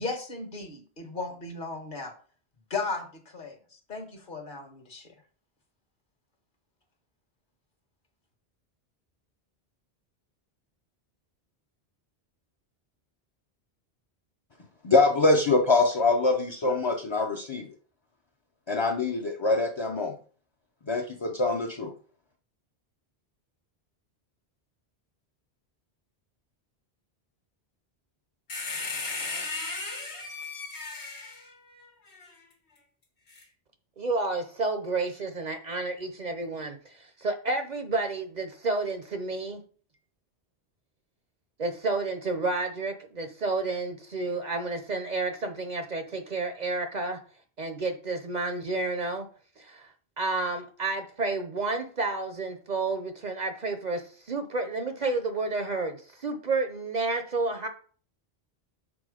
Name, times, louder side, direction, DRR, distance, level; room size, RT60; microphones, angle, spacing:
voice 1, 0.0-2.1 2.7-5.1, left 3 dB, 50° left, 5 dB, 1.4 m, -36 dB
voice 2, 14.8-17.7 18.7-20.1 20.9-21.9, left 3 dB, 30° left, 2 dB, 0.6 m, -24 dB
sound 1, 28.5-32.3 33.3-33.4, left 3 dB, 80° left, 1.6 m, -36 dB
voice 3, 34.0-36.8 37.2-39.6 41.6-47.2 47.6-49.3 49.7-49.8 50.2-54.0 54.3-57.7, right 3 dB, 45° right, 7 dB, 0.7 m, -30 dB
6.2 x 4.3 x 4.9 m, 0.43 s
omnidirectional pair, 1.1 m